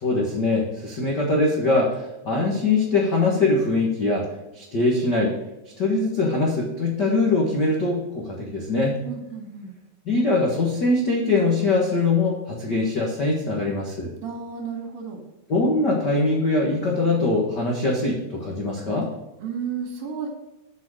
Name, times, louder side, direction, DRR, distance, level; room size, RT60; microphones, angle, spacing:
voice 1, 0.0-4.3 4.5-5.3 5.8-9.0 10.0-14.1 15.5-19.1, left 2 dB, 75° left, -2 dB, 0.9 m, -22 dB
voice 2, 9.0-9.8 14.2-15.2 19.4-20.3, right 6 dB, 70° right, 1 dB, 3.8 m, -32 dB
7.5 x 6.1 x 6.5 m, 1.0 s
omnidirectional pair, 4.5 m